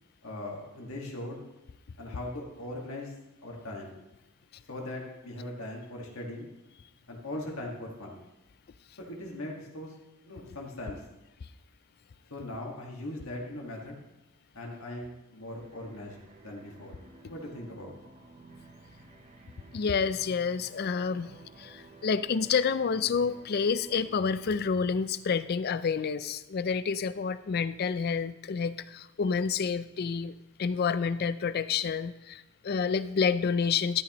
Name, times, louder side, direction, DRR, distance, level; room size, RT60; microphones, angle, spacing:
voice 1, 0.2-1.4 2.0-3.1 3.4-4.0 4.7-6.5 7.1-8.2 9.0-10.0 10.2-11.1 12.3-14.0 14.5-16.9 17.3-17.9, left 1 dB, 70° left, -1 dB, 1.8 m, -40 dB
sound 1, 15.3-25.8, right 2 dB, 30° right, 0.8 m, -54 dB
voice 2, 19.7-21.3 21.6-30.3 30.6-34.0, left 5 dB, 45° left, 14 dB, 0.4 m, -29 dB
13.0 x 8.8 x 3.0 m, 0.97 s
head